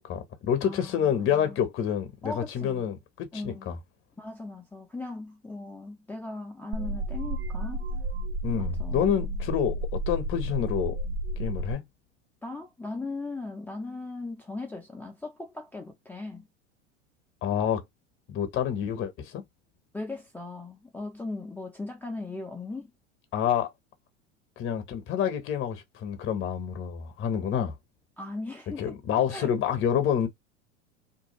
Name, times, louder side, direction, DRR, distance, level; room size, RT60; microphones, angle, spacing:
voice 1, 0.0-3.8 8.4-11.0 11.4-11.8 17.4-17.8 18.3-19.4 23.3-23.7 24.6-27.7 28.8-30.3, left 9 dB, 35° left, 0.9 m, -28 dB
voice 2, 0.6-1.6 2.2-2.9 3.3-3.7 4.2-7.8 8.6-9.4 12.4-16.5 19.9-22.9 28.2-28.9 29.3-29.5, left 3 dB, 5° left, 0.6 m, -38 dB
sound 1, 6.7-11.7, right 1 dB, 65° right, 1.1 m, -32 dB
2.6 x 2.2 x 3.0 m
hypercardioid pair, 85°, 36 cm